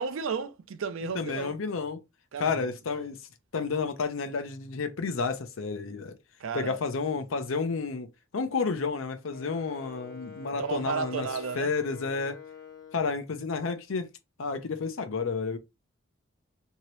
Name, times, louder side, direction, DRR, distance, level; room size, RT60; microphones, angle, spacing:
voice 1, 0.0-1.5 2.3-3.1 6.4-6.8 10.5-11.7, right 5 dB, 75° right, 0.5 m, -33 dB
voice 2, 1.1-2.0 2.4-3.2 3.5-6.1 6.5-8.1 8.3-11.3 11.6-12.4 12.9-14.1 14.4-15.6, left 4 dB, 80° left, 0.6 m, -31 dB
Wind instrument woodwind instrument, 9.3-13.3, left 8 dB, 50° left, 0.8 m, -46 dB
2.8 x 2.8 x 3.0 m
head